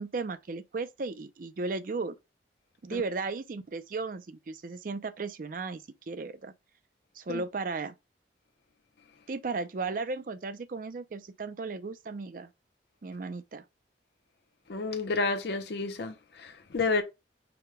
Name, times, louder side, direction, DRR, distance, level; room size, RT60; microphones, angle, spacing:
voice 1, 0.0-2.2 2.8-6.5 7.2-7.9 9.3-12.5 13.0-13.6, right 4 dB, 50° right, 0.4 m, -35 dB
voice 2, 14.7-17.0, left 3 dB, 65° left, 0.6 m, -30 dB
4.8 x 2.2 x 4.7 m
head